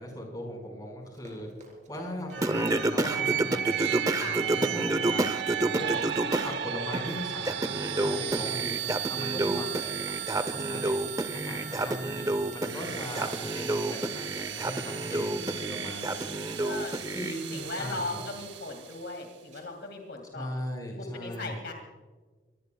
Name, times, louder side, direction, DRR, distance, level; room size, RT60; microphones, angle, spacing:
voice 1, 0.0-1.5 1.9-6.0 6.4-10.9 11.3-16.3 16.5-16.6 17.1-18.2 20.3-21.6, equal, 20° left, 1 dB, 5.1 m, -39 dB
Run, 1.0-18.6 18.9-19.2 19.5-19.9 20.2-20.3, right 1 dB, 40° right, 4.1 m, -52 dB
sound 1, 2.3-19.0, right 10 dB, 70° right, 0.9 m, -35 dB
Singing, 2.4-6.5 6.9-17.3, right 1 dB, 20° right, 0.7 m, -30 dB
voice 2, 15.0-17.0 17.5-20.5 21.0-21.7, left 2 dB, 65° left, 3 dB, 2.2 m, -39 dB
24.5 x 19.5 x 2.3 m, 1.3 s
head